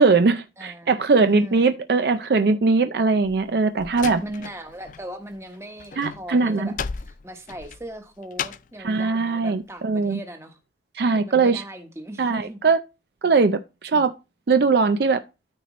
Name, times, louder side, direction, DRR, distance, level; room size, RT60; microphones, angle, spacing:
voice 1, 0.0-4.2 6.0-6.7 8.8-10.2 11.0-11.6 12.2-12.8 13.2-14.1 14.5-15.2, right 4 dB, 60° right, 0.4 m, -20 dB
voice 2, 0.6-1.7 4.2-10.6 11.2-12.6, right 1 dB, 15° right, 1.1 m, -39 dB
Slam, 3.2-5.1 5.3-8.8, left 6 dB, 45° left, 0.4 m, -35 dB
13.0 x 4.4 x 3.1 m
head